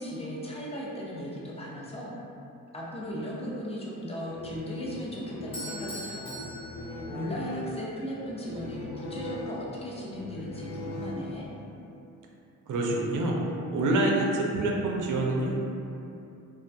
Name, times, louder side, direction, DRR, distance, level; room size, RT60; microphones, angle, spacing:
voice 1, 0.0-2.1 2.7-6.5 7.1-11.5, equal, 15° left, -6 dB, 0.6 m, -37 dB
sound 1, 4.2-11.7, left 2 dB, 80° left, 0.5 m, -40 dB
Bell / Doorbell, 5.5-7.6, equal, 40° left, 1.0 m, -41 dB
voice 2, 12.7-13.4 13.7-15.6, right 2 dB, 60° right, -1 dB, 0.5 m, -26 dB
2.3 x 2.1 x 2.6 m, 2.7 s
cardioid pair, 65°, 35 cm